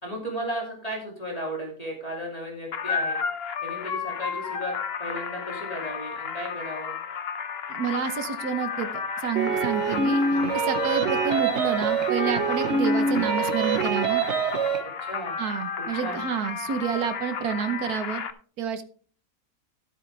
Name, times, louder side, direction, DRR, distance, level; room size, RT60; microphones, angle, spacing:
voice 1, 0.0-3.2 3.6-4.7 5.0-7.0 14.8-15.4 15.8-16.3, equal, 25° left, -1 dB, 2.6 m, -35 dB
sound 1, 2.7-18.3, left 6 dB, 50° left, 0.9 m, -33 dB
voice 2, 7.7-10.3 10.5-14.2 15.4-18.2 18.6-18.8, right 7 dB, 90° right, 10 dB, 1.5 m, -29 dB
sound 2, 9.4-14.8, right 4 dB, 50° right, 1.4 m, -25 dB
13.0 x 8.1 x 3.4 m, 0.43 s
omnidirectional pair, 1.6 m